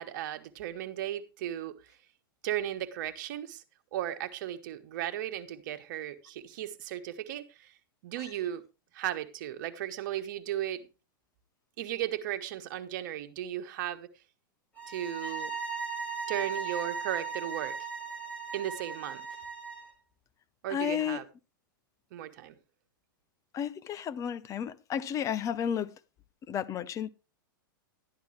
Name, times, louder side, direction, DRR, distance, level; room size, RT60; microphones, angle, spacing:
voice 1, 0.0-1.8 2.4-3.6 3.9-7.7 8.0-8.6 8.9-10.9 11.8-14.1 14.9-15.5 16.3-17.8 18.5-19.2 20.6-21.2 22.1-22.6, right 12 dB, 60° right, 1.4 m, -35 dB
sound 1, 14.8-19.9, right 5 dB, 10° left, 4.9 m, -37 dB
voice 2, 20.7-21.2 23.5-26.0 26.5-27.1, left 9 dB, 30° left, 0.7 m, -32 dB
12.5 x 10.5 x 3.2 m
hypercardioid pair, 110°, 12 cm